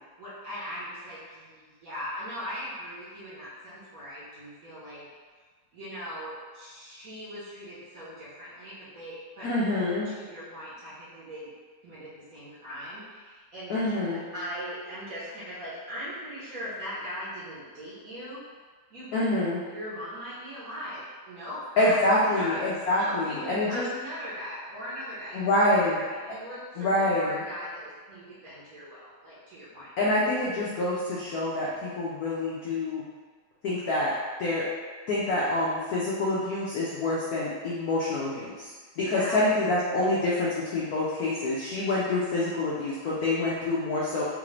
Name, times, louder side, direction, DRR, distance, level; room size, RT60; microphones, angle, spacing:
voice 1, 0.2-5.0 5.7-9.5 10.0-11.5 11.8-13.7 14.1-18.4 18.9-19.1 19.6-22.0 22.2-22.6 23.0-26.9 27.2-29.9 39.1-39.4, equal, 55° right, -10 dB, 1.0 m, -39 dB
voice 2, 9.4-10.1 13.7-14.2 19.1-19.6 21.8-23.8 25.3-26.0 26.8-27.4 30.0-33.0 33.6-34.1 34.4-34.7 35.1-38.7 39.0-44.2, left 2 dB, 80° left, -7 dB, 0.8 m, -26 dB
3.7 x 2.5 x 3.2 m, 1.5 s
omnidirectional pair, 2.3 m